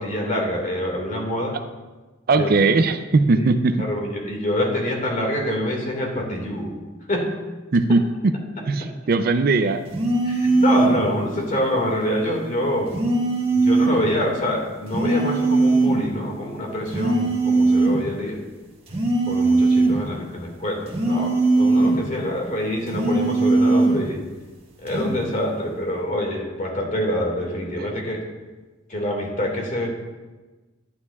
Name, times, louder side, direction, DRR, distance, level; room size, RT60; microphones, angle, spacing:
voice 1, 0.0-1.6 2.4-2.5 3.3-3.5 3.8-6.7 7.1-7.3 10.2-12.9 13.5-18.4 19.3-24.2 24.8-28.2 28.9-29.9, left 1 dB, 40° left, 0 dB, 2.0 m, -26 dB
voice 2, 2.3-3.8 7.7-8.3 8.7-9.9 27.8-27.9, right 3 dB, 50° right, 10 dB, 0.4 m, -19 dB
sound 1, 9.9-11.0 12.9-14.0 14.9-16.0 16.9-18.0 18.9-20.0 20.9-22.0 22.9-24.0 24.9-25.2, right 3 dB, 30° right, 1.7 m, -19 dB
11.5 x 10.5 x 2.4 m, 1.2 s
head